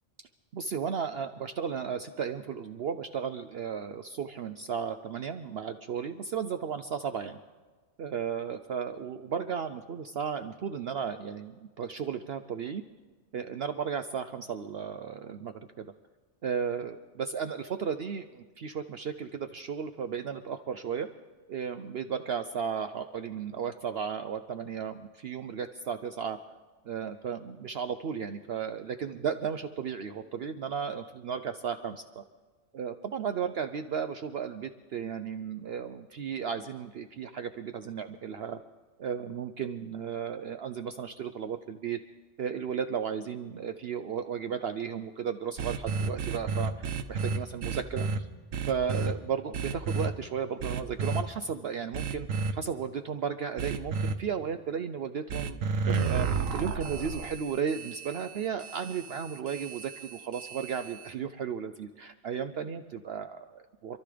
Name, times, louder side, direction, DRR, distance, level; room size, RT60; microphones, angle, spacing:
voice 1, 0.5-7.4 8.0-12.8 13.3-15.9 16.4-21.1 21.5-26.4 26.8-32.2 32.7-38.6 39.0-42.0 42.4-48.3 48.6-64.0, right 7 dB, 60° right, 9 dB, 0.8 m, -34 dB
sound 1, 45.6-48.2 48.5-49.1 49.5-50.1 50.6-51.2 51.9-52.5 53.6-54.1 55.3-61.1, right 5 dB, 90° right, 1.3 m, -32 dB
27.0 x 13.0 x 3.4 m, 1.4 s
omnidirectional pair, 1.3 m